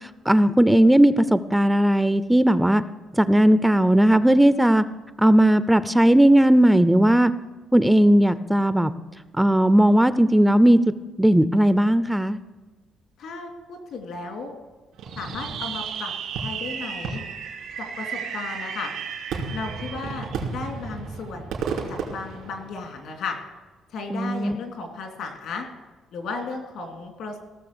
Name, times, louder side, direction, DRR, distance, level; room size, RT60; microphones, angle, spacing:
voice 1, 0.3-2.8 3.2-4.8 5.2-7.3 7.7-8.9 9.4-10.8 11.2-12.4 24.1-24.6, right 1 dB, 5° right, 13 dB, 0.5 m, -17 dB
voice 2, 13.2-14.5 15.2-16.1 16.4-17.2 17.8-18.9 19.5-21.5 21.9-23.4 23.9-25.7 26.1-27.4, left 4 dB, 80° left, 3 dB, 2.9 m, -34 dB
Fireworks, 15.0-23.1, right 6 dB, 85° right, 2.7 m, -33 dB
16.5 x 6.7 x 6.8 m, 1.2 s
cardioid pair, 110°, 0 cm